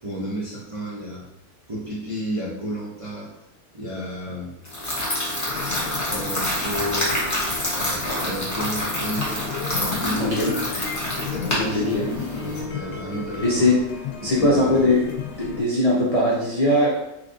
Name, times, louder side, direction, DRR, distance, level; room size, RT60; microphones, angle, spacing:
voice 1, 0.0-1.3 1.7-3.3 3.7-4.6 6.1-7.3 7.7-9.4 9.8-10.4 11.2-13.8 14.2-14.9, equal, 40° right, -7 dB, 0.4 m, -32 dB
sound 1, 4.7-12.6, left 1 dB, 15° left, 0.7 m, -27 dB
sound 2, 5.5-15.6, left 4 dB, 90° left, 1.1 m, -34 dB
voice 2, 10.2-10.5 11.6-12.1 13.4-13.8 14.2-15.0 15.4-17.0, left 1 dB, 75° left, -5 dB, 0.3 m, -20 dB
3.9 x 3.2 x 2.6 m, 0.86 s
omnidirectional pair, 1.6 m